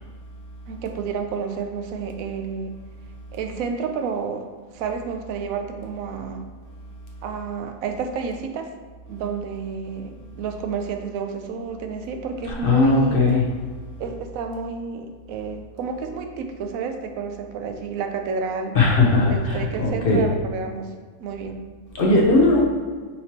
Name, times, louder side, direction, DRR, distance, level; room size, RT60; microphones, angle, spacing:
voice 1, 0.7-2.7 3.3-6.4 7.2-8.7 9.1-13.2 14.0-18.8 19.2-20.9 21.2-21.6, right 5 dB, 75° right, 6 dB, 1.0 m, -30 dB
voice 2, 12.6-13.4 18.7-20.2 21.9-22.6, left 2 dB, 45° left, -3 dB, 1.0 m, -18 dB
5.8 x 3.1 x 2.8 m, 1.5 s
omnidirectional pair, 1.5 m